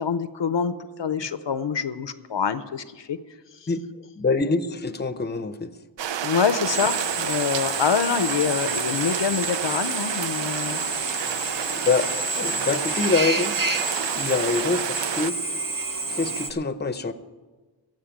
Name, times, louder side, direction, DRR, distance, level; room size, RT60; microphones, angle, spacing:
voice 1, 0.0-3.2 6.2-10.8, left 6 dB, 70° left, 13 dB, 0.7 m, -26 dB
voice 2, 4.2-5.7 11.8-12.1 12.4-13.5 14.1-15.4 16.1-17.1, left 4 dB, 25° left, 12 dB, 0.7 m, -25 dB
sound 1, 6.0-15.3, right 9 dB, 75° right, 0.5 m, -31 dB
Drill, 6.7-16.5, right 3 dB, 45° right, 0.9 m, -29 dB
15.0 x 5.5 x 8.9 m, 1.3 s
wide cardioid pair, 70°, 45 cm